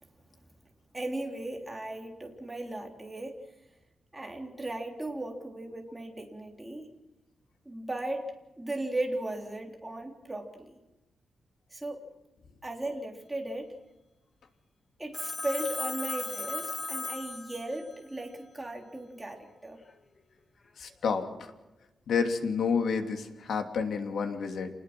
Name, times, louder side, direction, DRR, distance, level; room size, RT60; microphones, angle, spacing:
voice 1, 0.9-3.5 4.1-6.9 7.7-8.3 8.6-10.8 11.7-12.0 12.6-13.7 15.0-19.8, right 1 dB, 10° right, 1 dB, 3.6 m, -36 dB
Telephone, 15.1-18.0, left 3 dB, 30° left, 1.3 m, -36 dB
voice 2, 20.8-21.5 22.1-24.7, left 5 dB, 70° left, 5 dB, 2.9 m, -30 dB
28.0 x 20.5 x 6.2 m, 1.0 s
wide cardioid pair, 170°, 0 cm